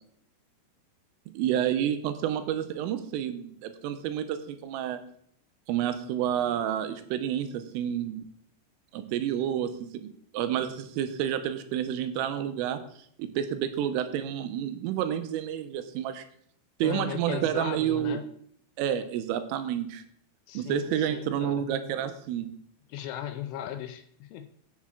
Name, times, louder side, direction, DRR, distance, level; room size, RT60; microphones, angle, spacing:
voice 1, 1.3-5.0 5.7-8.2 8.9-10.1 10.3-12.8 13.2-16.2 16.8-18.2 18.8-20.0 20.5-22.5, right 10 dB, 90° right, 9 dB, 3.3 m, -29 dB
voice 2, 16.8-18.2 20.5-21.7 22.9-24.5, left 11 dB, 80° left, 8 dB, 2.9 m, -37 dB
15.0 x 7.4 x 3.7 m, 0.65 s
omnidirectional pair, 5.9 m